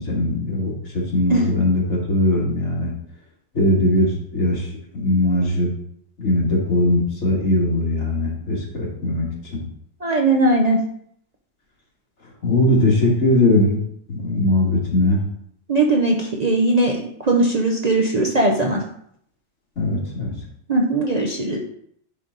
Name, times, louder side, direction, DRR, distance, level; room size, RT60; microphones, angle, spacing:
voice 1, 0.0-2.9 3.5-4.7 4.9-5.7 6.2-9.6 12.4-13.8 14.1-15.2 19.8-20.3, left 1 dB, 60° left, -3 dB, 2.2 m, -20 dB
voice 2, 10.0-10.8 15.7-18.8 20.7-21.6, right 2 dB, 40° right, 0 dB, 0.7 m, -19 dB
10.0 x 3.4 x 3.9 m, 0.68 s
omnidirectional pair, 1.4 m